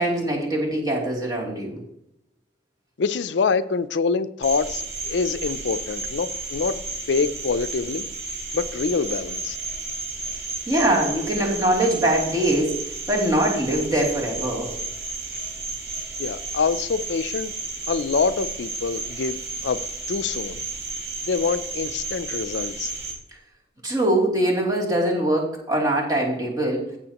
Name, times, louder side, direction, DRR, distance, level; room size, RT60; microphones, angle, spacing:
voice 1, 0.0-1.8 10.7-14.7 23.8-27.0, right 1 dB, 20° right, -3 dB, 2.9 m, -23 dB
voice 2, 3.0-6.8 7.1-8.1 8.5-9.6 16.2-17.5 17.9-19.4 19.6-19.8 20.1-20.6 21.3-22.9, left 5 dB, 70° left, 13 dB, 0.4 m, -25 dB
Cricket, 4.4-23.1, right 3 dB, 55° right, 4.2 m, -32 dB
15.5 x 7.0 x 2.9 m, 0.79 s
head